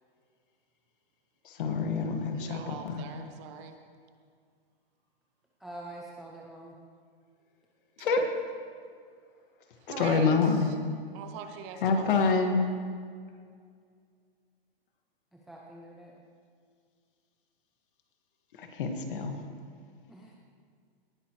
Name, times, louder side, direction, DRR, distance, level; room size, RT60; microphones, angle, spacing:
voice 1, 1.5-3.1 8.0-8.2 10.0-10.7 11.8-12.7 18.6-19.4, left 4 dB, 60° left, 4 dB, 1.8 m, -27 dB
voice 2, 2.3-3.8 8.0-8.1 9.9-10.7 11.1-12.4, right 7 dB, 30° right, 7 dB, 0.9 m, -42 dB
voice 3, 5.6-6.8 15.5-16.1 20.1-20.4, right 1 dB, ahead, -3 dB, 0.4 m, -45 dB
18.5 x 11.5 x 3.2 m, 2.1 s
hypercardioid pair, 150°, 30 cm